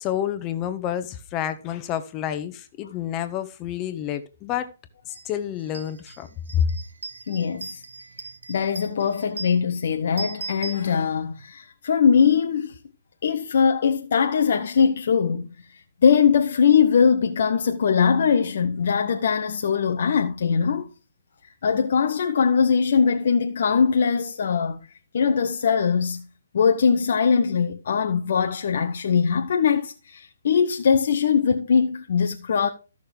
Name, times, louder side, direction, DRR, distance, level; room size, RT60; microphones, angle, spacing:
voice 1, 0.0-4.7 5.2-6.3 6.5-6.7, left 10 dB, 25° left, 1.3 m, -28 dB
sound 1, 5.1-5.3 5.6-11.4, right 4 dB, 70° right, 1.1 m, -39 dB
voice 2, 7.3-7.8 8.5-12.8 13.2-15.5 16.0-20.9 21.6-24.8 25.1-26.2 26.5-32.7, left 6 dB, 55° left, 0.9 m, -21 dB
14.0 x 6.5 x 3.5 m
figure-of-eight pair, 135°, 0 cm